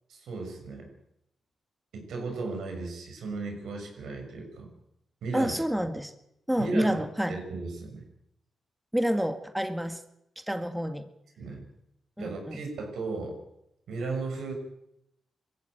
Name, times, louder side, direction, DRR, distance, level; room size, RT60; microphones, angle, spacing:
voice 1, 0.1-0.9 1.9-4.7 5.2-5.5 6.6-7.0 7.3-8.0 11.4-11.6 12.2-13.4 13.9-14.5, right 3 dB, 80° right, 3 dB, 6.4 m, -35 dB
voice 2, 5.3-6.1 6.5-7.4 8.9-10.0 10.4-11.1 12.2-12.6, equal, 5° right, 7 dB, 1.9 m, -29 dB
21.5 x 15.0 x 9.1 m, 0.78 s
cardioid pair, 65°, 0 cm